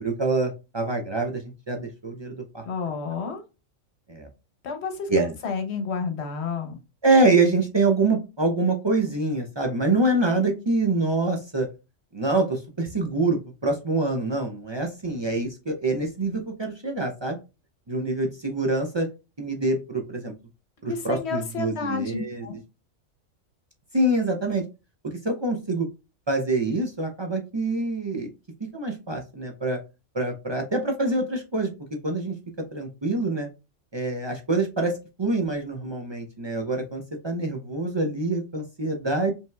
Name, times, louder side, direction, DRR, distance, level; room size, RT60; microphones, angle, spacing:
voice 1, 0.0-2.6 4.1-4.3 5.1-5.3 7.0-11.7 12.1-17.4 17.9-19.1 19.4-20.3 20.8-22.5 23.9-24.6 25.2-25.9 26.3-28.3 28.7-29.8 30.1-31.7 32.0-32.3 32.7-33.5 33.9-39.3, right 2 dB, 40° right, 2 dB, 0.3 m, -25 dB
voice 2, 2.6-3.4 4.6-5.1 5.4-6.8 20.9-22.6, left 5 dB, 60° left, 6 dB, 1.1 m, -30 dB
5.3 x 3.4 x 2.3 m, 0.29 s
omnidirectional pair, 1.3 m